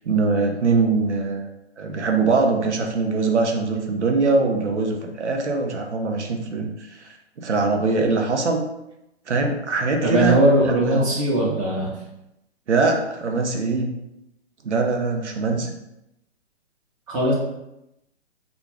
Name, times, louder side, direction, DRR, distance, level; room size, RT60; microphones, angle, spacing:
voice 1, 0.0-1.5 1.8-7.0 7.4-8.6 9.3-11.0 12.7-13.9 14.6-15.7, right 3 dB, 85° right, 2 dB, 0.7 m, -22 dB
voice 2, 10.0-11.9 17.1-17.3, right 1 dB, 30° right, -5 dB, 0.8 m, -19 dB
2.4 x 2.4 x 3.2 m, 0.88 s
hypercardioid pair, 130°, 34 cm